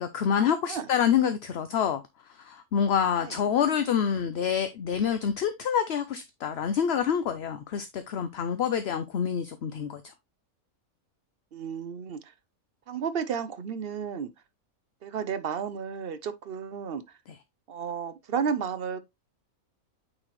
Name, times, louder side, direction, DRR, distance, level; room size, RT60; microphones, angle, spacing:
voice 1, 0.0-2.0 2.3-10.0, left 8 dB, 60° left, 0.7 m, -27 dB
voice 2, 11.5-12.3 12.9-14.3 15.0-17.0 17.7-19.1, right 6 dB, 55° right, 0.7 m, -32 dB
8.7 x 4.3 x 3.1 m
omnidirectional pair, 1.5 m